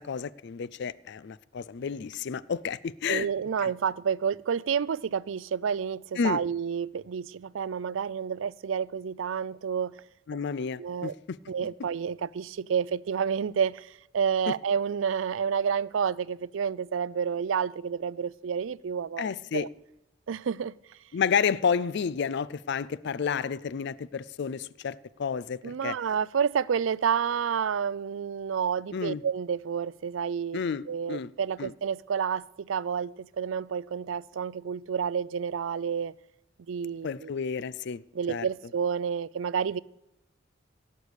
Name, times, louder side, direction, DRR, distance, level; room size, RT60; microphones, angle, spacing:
voice 1, 0.0-3.3 3.6-3.7 6.2-6.4 10.3-11.4 14.5-14.6 19.2-19.7 21.1-26.0 28.9-29.2 30.5-31.3 31.6-31.7 37.0-38.0 38.3-38.5, left 6 dB, 60° left, 0.4 m, -30 dB
voice 2, 3.1-10.0 10.8-11.1 11.5-19.7 20.3-20.7 25.6-30.6 30.9-36.1 36.7-37.3 38.1-39.8, right 7 dB, 85° right, 0.4 m, -29 dB
17.0 x 6.7 x 8.2 m
head